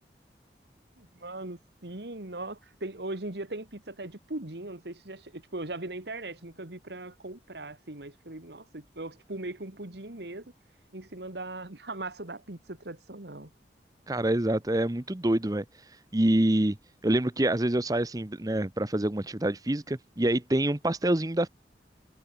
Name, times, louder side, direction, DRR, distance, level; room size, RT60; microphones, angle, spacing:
voice 1, 1.0-10.4 10.9-13.5, right 2 dB, 70° right, 2.1 m, -39 dB
voice 2, 14.1-15.6 16.1-16.8 17.0-21.5, right 1 dB, 20° right, 0.8 m, -26 dB
head